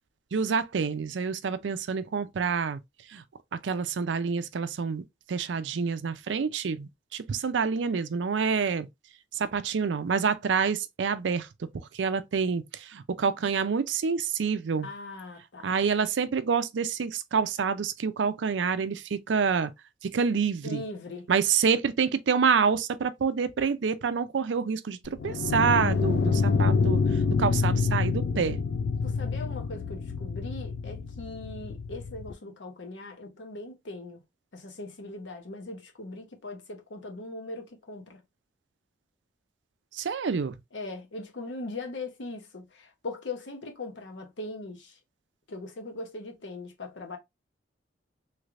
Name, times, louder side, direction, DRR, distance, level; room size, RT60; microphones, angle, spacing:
voice 1, 0.3-2.8 3.1-3.2 3.6-5.0 5.3-8.9 9.3-11.5 11.9-14.9 15.6-19.7 20.0-20.8 21.3-27.0 27.4-28.6 39.9-40.5, right 6 dB, 85° right, 0.5 m, -27 dB
voice 2, 14.8-15.7 20.6-21.3 29.0-34.2 34.5-38.2 40.7-45.0 45.5-47.2, left 2 dB, 90° left, 0.9 m, -40 dB
sound 1, 25.1-32.3, left 4 dB, 65° left, 0.3 m, -27 dB
3.3 x 3.1 x 2.4 m
head